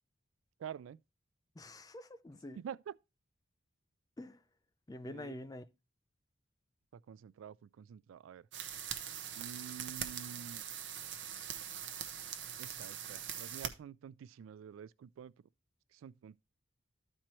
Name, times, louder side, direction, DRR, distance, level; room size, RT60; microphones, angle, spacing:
voice 1, 0.6-1.0 2.6-3.0 5.1-5.3 6.9-8.5 9.3-10.6 12.6-15.3 15.9-16.4, right 8 dB, 85° right, 0.3 m, -48 dB
voice 2, 1.6-2.6 4.2-4.4 4.9-5.6, left 1 dB, 20° left, 0.4 m, -46 dB
sound 1, 8.5-13.7, right 9 dB, 65° right, 0.7 m, -42 dB
13.0 x 4.4 x 3.0 m
head